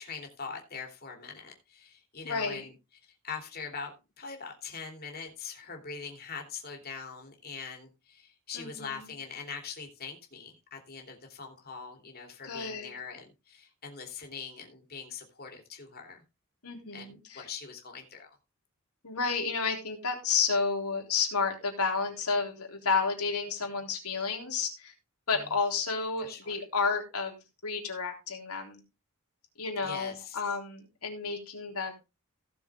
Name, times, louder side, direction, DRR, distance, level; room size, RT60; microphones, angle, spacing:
voice 1, 0.0-2.7 3.1-16.2 16.9-18.3 25.4-25.5 26.2-26.6 29.8-30.4, left 5 dB, 45° left, 3 dB, 3.1 m, -42 dB
voice 2, 2.2-2.7 8.5-8.9 12.4-12.9 16.6-17.4 19.0-24.9 25.3-27.4 27.6-28.8 29.6-31.9, left 5 dB, 85° left, 2 dB, 3.7 m, -31 dB
16.5 x 6.9 x 3.6 m, 0.26 s
head